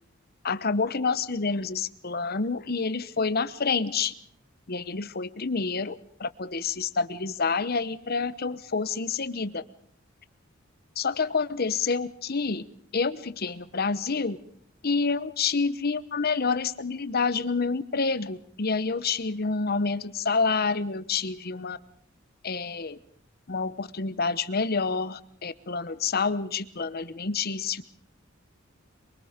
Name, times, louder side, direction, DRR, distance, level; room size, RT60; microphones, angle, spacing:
voice 1, 0.4-4.1 4.7-5.9 6.2-9.6 11.0-12.6 12.9-14.4 14.8-21.8 22.4-23.0 23.5-27.8, left 4 dB, 50° left, 14 dB, 1.0 m, -28 dB
24.0 x 23.5 x 5.2 m, 0.63 s
head